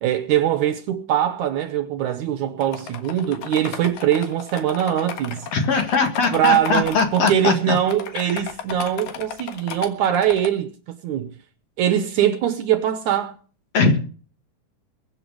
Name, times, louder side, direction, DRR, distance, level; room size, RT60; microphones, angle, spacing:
voice 1, 0.0-5.5 6.3-11.3 11.8-13.4, right 10 dB, 70° right, 2.0 m, -22 dB
sound 1, 2.6-7.4 7.8-10.5, left 8 dB, 70° left, 3.1 m, -34 dB
voice 2, 5.5-7.8 13.7-13.9, left 4 dB, 50° left, 2.6 m, -20 dB
22.5 x 8.1 x 4.8 m
omnidirectional pair, 4.1 m